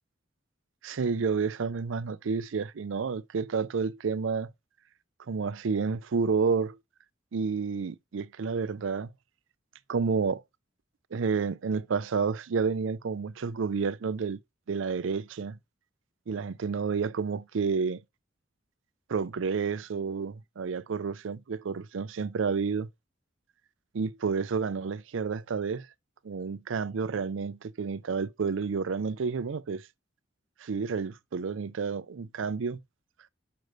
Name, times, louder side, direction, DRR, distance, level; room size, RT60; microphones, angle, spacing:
voice 1, 0.8-4.5 5.3-6.8 7.3-9.1 9.9-10.4 11.1-14.4 14.7-15.6 16.3-18.0 19.1-22.9 23.9-25.9 26.2-29.8 30.6-32.8, right 5 dB, 80° right, 0.5 m, -30 dB
6.5 x 5.1 x 3.1 m
head